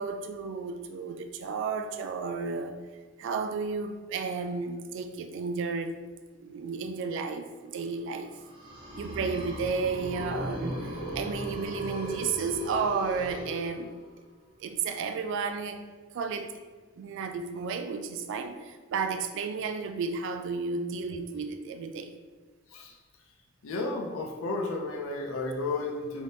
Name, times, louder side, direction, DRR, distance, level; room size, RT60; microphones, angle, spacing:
voice 1, 0.0-2.7 3.2-6.0 6.4-8.3 9.0-14.0 14.6-15.8 16.1-16.5 17.0-22.1, right 5 dB, 65° right, 8 dB, 0.3 m, -32 dB
sound 1, 8.3-14.2, equal, 25° right, 0.6 m, -37 dB
voice 2, 23.6-26.2, left 2 dB, 80° left, 0 dB, 0.5 m, -32 dB
3.5 x 2.6 x 2.7 m, 1.4 s
head